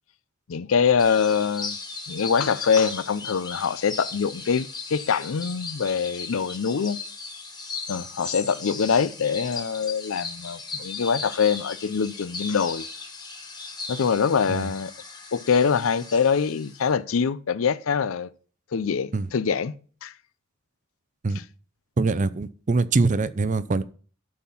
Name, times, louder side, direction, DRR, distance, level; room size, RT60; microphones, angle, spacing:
voice 1, 0.5-1.8 2.1-7.0 7.9-12.8 13.9-14.9 15.3-18.3 18.7-19.7 20.0-20.1, left 6 dB, 70° left, 0.5 m, -24 dB
sound 1, 1.0-16.9, left 4 dB, 20° left, 1.2 m, -37 dB
voice 2, 22.0-23.8, right 3 dB, 35° right, 0.5 m, -23 dB
12.0 x 4.2 x 5.6 m
head